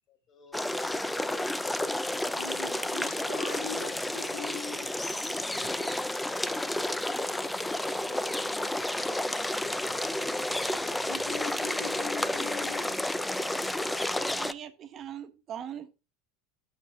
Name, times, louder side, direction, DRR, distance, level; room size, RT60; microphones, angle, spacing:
voice 1, 0.1-1.6 7.7-8.5, left 6 dB, 40° left, 2.3 m, -57 dB
sound 1, 0.5-14.5, left 1 dB, 5° left, 0.5 m, -31 dB
voice 2, 2.3-4.9 5.6-5.8 8.9-9.1 9.6-9.7 10.5-13.0, left 4 dB, 85° left, 3.5 m, -42 dB
voice 3, 13.8-16.0, right 9 dB, 40° right, 1.3 m, -41 dB
9.5 x 6.5 x 3.6 m
hypercardioid pair, 95°, 0 cm